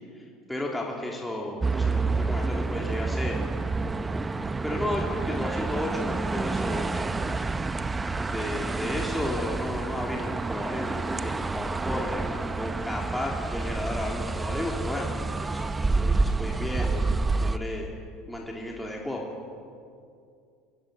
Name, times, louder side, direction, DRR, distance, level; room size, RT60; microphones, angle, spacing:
voice 1, 0.1-3.4 4.6-7.1 8.3-15.2 15.5-17.1 17.4-18.0 18.3-19.3, left 1 dB, 5° left, -2 dB, 3.2 m, -33 dB
sound 1, 1.6-17.6, right 3 dB, 15° right, 0.8 m, -28 dB
24.0 x 17.5 x 7.9 m, 2.4 s
supercardioid pair, 100°, 0 cm